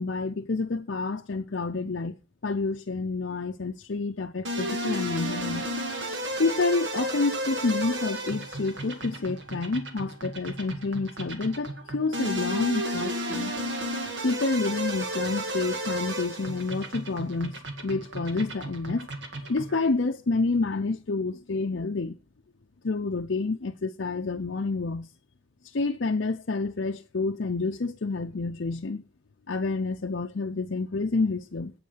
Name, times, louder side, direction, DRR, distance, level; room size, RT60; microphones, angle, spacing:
voice 1, 0.0-2.1 2.4-5.6 6.4-13.5 14.2-19.1 19.5-22.2 22.8-25.1 25.6-29.0 29.5-31.7, left 3 dB, 60° left, 0.6 m, -29 dB
sound 1, 4.4-19.8, equal, 60° right, 2.0 m, -33 dB
8.8 x 8.5 x 7.4 m
head